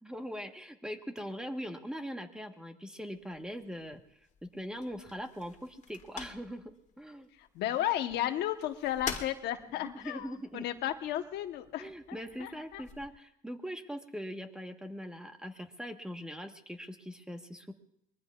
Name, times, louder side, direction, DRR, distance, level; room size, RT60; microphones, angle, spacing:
voice 1, 0.0-4.0 4.4-7.3 10.0-10.6 11.7-17.7, equal, 5° right, 5 dB, 1.3 m, -41 dB
sound 1, 3.1-13.1, left 7 dB, 45° left, 1.6 m, -48 dB
voice 2, 7.4-12.8, left 12 dB, 80° left, 7 dB, 1.1 m, -34 dB
24.0 x 21.0 x 2.4 m, 0.78 s
cardioid pair, 110°, 17 cm